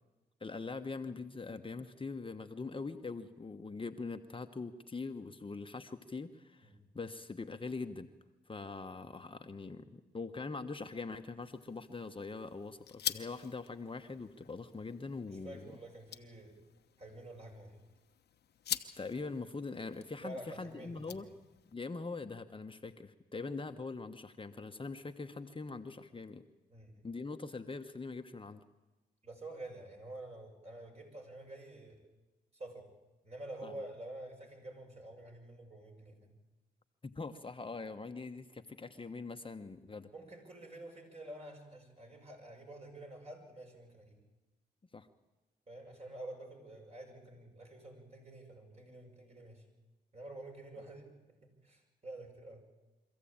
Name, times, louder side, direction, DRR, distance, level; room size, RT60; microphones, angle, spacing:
voice 1, 0.4-8.1 8.5-15.7 18.7-21.3 21.7-26.4 27.0-28.6 33.6-33.7 37.0-40.1 44.9-45.1, left 4 dB, 30° left, 7 dB, 1.1 m, -43 dB
sound 1, 11.4-21.7, left 9 dB, 70° left, 1.0 m, -46 dB
voice 2, 15.3-16.6 17.0-17.8 20.2-21.3 26.7-27.0 29.2-32.1 32.5-32.9 33.2-36.3 40.1-44.2 45.7-49.6 50.1-51.4 51.6-52.6, right 1 dB, 40° right, 1 dB, 6.7 m, -49 dB
24.0 x 14.5 x 8.8 m, 1.1 s
supercardioid pair, 55°, 17 cm